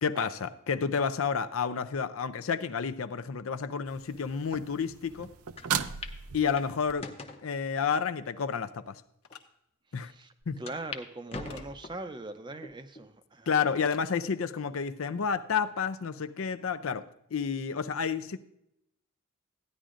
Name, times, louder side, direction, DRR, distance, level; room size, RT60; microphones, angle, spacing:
voice 1, 0.0-5.3 6.3-7.1 7.4-9.0 9.9-10.1 10.5-10.6 13.5-18.4, left 6 dB, 70° left, 0.5 m, -30 dB
sound 1, 3.9-6.9 10.4-10.5, right 8 dB, 80° right, 0.5 m, -37 dB
sound 2, 5.6-5.7 6.0-6.2 6.6-7.4 8.1-8.2 8.9-9.0 9.3-9.4 10.7-11.0 11.3-12.1 12.6-13.1 13.6-13.7 14.8-15.3, left 3 dB, 25° left, 0.7 m, -42 dB
sound 3, 9.2-9.4 11.5-11.7 13.8-14.1, left 7 dB, 90° left, 1.0 m, -50 dB
voice 2, 10.0-13.5, right 2 dB, 20° right, 0.5 m, -41 dB
14.5 x 10.0 x 2.5 m
head